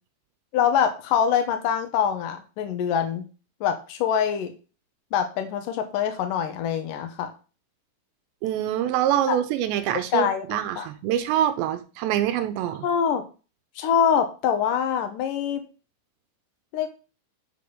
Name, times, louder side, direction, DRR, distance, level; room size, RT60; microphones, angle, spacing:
voice 1, 0.5-3.3 3.6-4.5 5.1-7.3 9.3-9.4 10.1-10.9 12.8-13.2 13.8-15.6 16.7-16.9, left 8 dB, 80° left, 2.0 m, -24 dB
voice 2, 8.4-12.9, right 11 dB, 80° right, 2.8 m, -25 dB
7.6 x 5.4 x 6.8 m
omnidirectional pair, 5.6 m